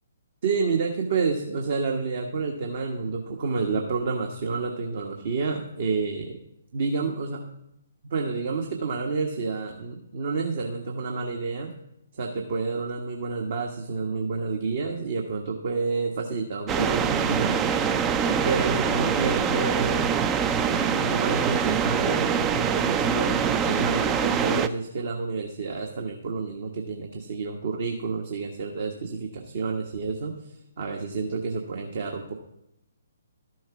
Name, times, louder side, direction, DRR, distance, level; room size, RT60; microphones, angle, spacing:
voice 1, 0.4-6.4 6.7-7.4 8.0-11.7 12.1-17.6 18.4-20.1 20.8-32.3, right 4 dB, 50° right, 2 dB, 1.3 m, -29 dB
sound 1, 16.7-24.7, right 7 dB, 15° right, 0.5 m, -24 dB
12.5 x 6.2 x 6.0 m, 0.83 s
figure-of-eight pair, 130°, 0 cm